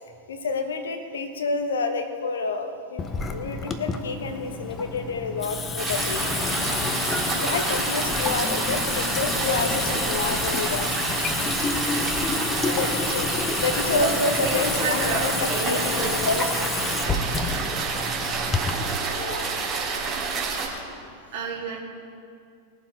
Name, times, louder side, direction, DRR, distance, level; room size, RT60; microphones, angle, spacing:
voice 1, 0.3-3.0 3.3-6.2 7.3-10.9 12.6-13.3 13.6-16.6 19.1-19.5, left 4 dB, 65° left, 7 dB, 1.1 m, -29 dB
Water tap faucet / Sink (filling or washing) / Drip, 3.0-19.0, left 4 dB, 20° left, 0.8 m, -29 dB
sound 1, 5.8-20.7, right 4 dB, 30° right, 3.0 m, -28 dB
voice 2, 13.9-16.4 16.9-17.8 21.3-21.8, right 4 dB, 50° right, -1 dB, 2.5 m, -31 dB
20.5 x 7.4 x 4.6 m, 2.4 s
figure-of-eight pair, 90°, 0 cm